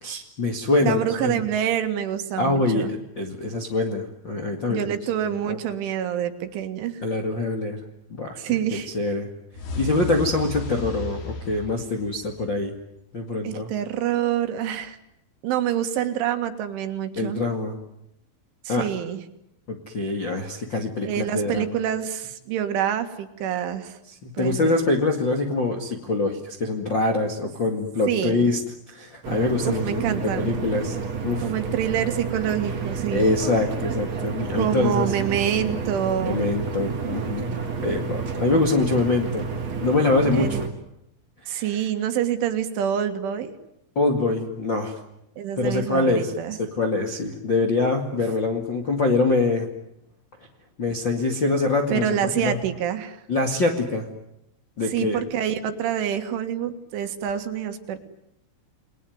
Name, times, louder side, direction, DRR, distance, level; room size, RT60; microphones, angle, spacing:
voice 1, 0.0-1.4 2.4-4.8 5.5-5.6 7.0-7.8 8.1-8.6 8.9-9.3 9.8-12.7 13.1-13.7 17.1-17.7 18.7-18.9 19.7-21.7 24.2-28.6 28.9-30.9 31.2-31.5 33.1-35.1 36.2-39.5 39.8-40.7 41.4-41.8 43.9-44.9 45.6-46.3 46.6-49.7 50.8-52.2 52.4-52.6 53.3-54.1 54.8-55.2, left 3 dB, 40° left, 2 dB, 1.6 m, -24 dB
voice 2, 0.8-2.9 4.7-7.0 8.4-8.9 13.4-15.0 15.4-17.4 18.7-19.2 21.0-24.0 24.4-24.7 28.1-28.4 29.6-30.5 31.4-33.3 34.6-36.4 40.3-40.6 41.5-43.5 45.4-46.6 51.9-53.2 54.9-58.0, right 10 dB, 75° right, 8 dB, 4.2 m, -26 dB
sound 1, 9.5-12.7, left 2 dB, 75° left, 7.1 m, -33 dB
sound 2, 29.2-40.7, right 6 dB, 40° right, 3.3 m, -30 dB
29.0 x 21.5 x 9.5 m, 0.82 s
omnidirectional pair, 5.8 m